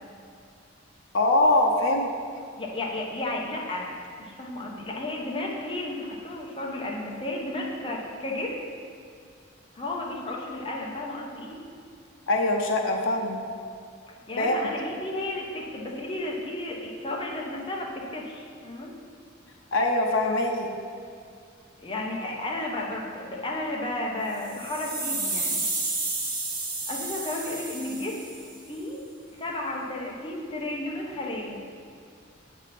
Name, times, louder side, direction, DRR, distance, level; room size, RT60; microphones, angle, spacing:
voice 1, 1.1-2.1 12.3-13.4 14.4-14.6 19.7-20.7, left 2 dB, 80° left, 1 dB, 0.6 m, -23 dB
voice 2, 2.6-3.9 4.2-8.5 9.7-11.6 14.1-18.9 21.8-25.6 26.9-28.2 28.7-29.0 29.4-31.6, left 1 dB, 25° left, -2 dB, 0.9 m, -33 dB
sound 1, 24.3-28.5, right 2 dB, 45° right, 1.1 m, -31 dB
7.3 x 3.7 x 5.8 m, 2.3 s
head